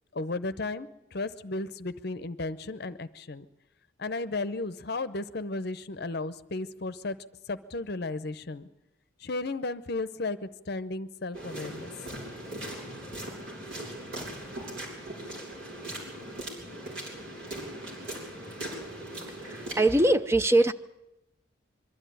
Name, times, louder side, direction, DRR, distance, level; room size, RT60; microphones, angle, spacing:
voice 1, 0.1-3.4 4.0-7.2 7.5-8.6 9.2-11.9, left 3 dB, 55° left, 14 dB, 0.7 m, -34 dB
sound 1, 11.3-20.1, right 1 dB, 70° right, 5.9 m, -39 dB
voice 2, 19.4-20.7, right 1 dB, 15° right, 9 dB, 0.6 m, -22 dB
23.0 x 12.5 x 9.2 m, 0.94 s
head